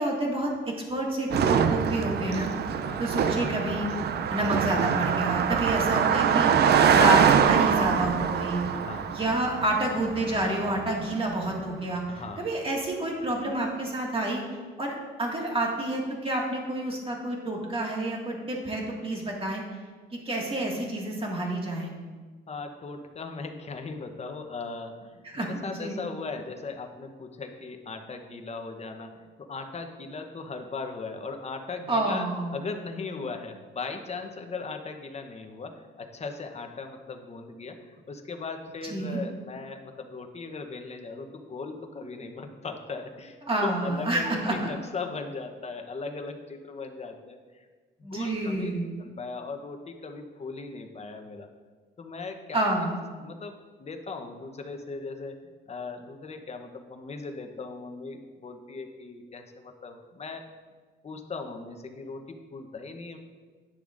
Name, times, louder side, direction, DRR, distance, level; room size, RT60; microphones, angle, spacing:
voice 1, 0.0-2.5 3.0-3.9 4.3-6.5 6.9-8.6 9.1-12.0 12.4-14.4 14.8-19.6 20.3-21.9 25.2-26.0 31.9-32.5 38.8-39.2 43.4-44.7 48.0-48.9 52.5-53.0, right 1 dB, 30° right, -1 dB, 1.9 m, -29 dB
Car passing by, 1.3-10.9, right 7 dB, 55° right, 0.5 m, -24 dB
voice 2, 2.7-3.0 8.7-9.1 12.1-12.5 22.5-32.3 32.5-47.7 48.1-48.7 49.0-51.5 52.0-52.6 53.2-55.4 55.7-60.4 61.0-63.2, left 4 dB, 35° left, 5 dB, 0.9 m, -38 dB
10.5 x 6.8 x 2.5 m, 1.4 s
cardioid pair, 90°, 20 cm